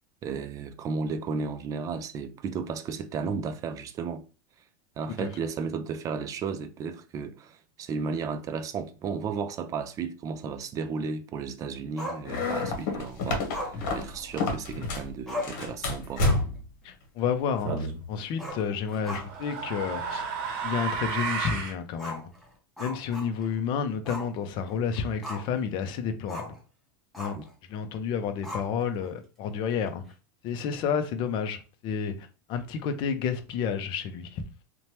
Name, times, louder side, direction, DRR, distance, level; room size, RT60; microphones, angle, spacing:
voice 1, 0.2-4.2 5.0-16.2 27.4-27.5, right 5 dB, 30° right, 0.4 m, -34 dB
Growling, 12.0-12.8 13.5-14.7 15.0-15.1 15.3-15.7 16.1-16.6 16.9-17.0 18.3-19.5 19.9-20.0 20.5-20.6 21.9-23.6 24.0-24.3 24.7-25.6 26.3-26.6 27.1-27.5 28.4-29.0, left 1 dB, ahead, 0.8 m, -38 dB
sound 1, 12.2-15.1 15.4-16.7, left 2 dB, 65° left, 1.0 m, -29 dB
voice 2, 16.8-20.3 20.6-22.3 22.8-26.5 27.2-27.4 27.7-30.0 30.4-34.4, left 7 dB, 45° left, 0.5 m, -30 dB
sound 2, 17.6-18.0 19.0-21.8, right 5 dB, 55° right, 0.8 m, -32 dB
3.0 x 2.2 x 2.8 m
supercardioid pair, 125°, 11 cm